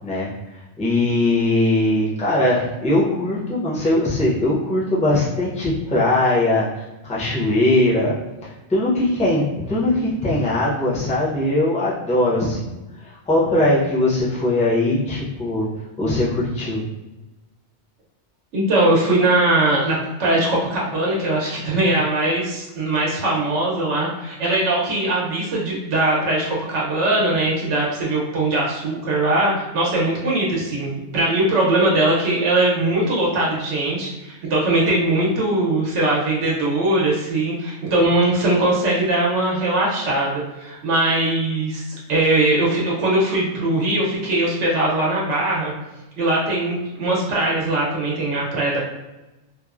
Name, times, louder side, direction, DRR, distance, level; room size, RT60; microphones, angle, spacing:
voice 1, 0.0-8.1 8.4-15.7 16.0-16.8, left 1 dB, 10° left, -7 dB, 0.5 m, -20 dB
voice 2, 18.5-41.8 42.1-45.7 46.2-48.8, right 2 dB, 80° right, -4 dB, 1.0 m, -20 dB
2.9 x 2.1 x 2.4 m, 1.0 s
omnidirectional pair, 1.2 m